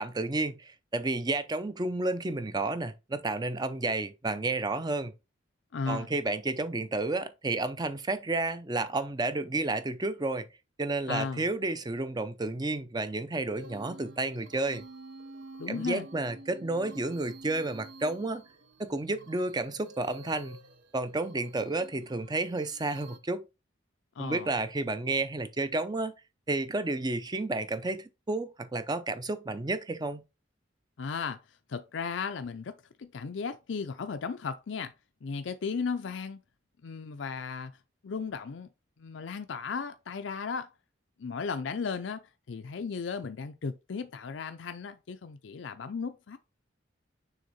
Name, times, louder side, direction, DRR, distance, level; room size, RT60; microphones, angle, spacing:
voice 1, 0.0-5.1 5.9-10.5 10.8-14.8 15.7-18.4 18.8-20.6 20.9-23.4 24.2-26.1 26.5-30.2, right 2 dB, 20° right, 0.5 m, -31 dB
voice 2, 5.7-6.1 11.1-11.4 15.6-16.1 24.2-24.5 31.0-31.4 31.7-32.7 33.0-34.9 35.2-36.4 36.8-37.7 38.0-38.7 39.0-40.7 41.2-46.4, left 5 dB, 70° left, 0.5 m, -35 dB
sound 1, 13.5-23.2, right 2 dB, 65° right, 0.8 m, -50 dB
6.5 x 3.5 x 4.1 m
head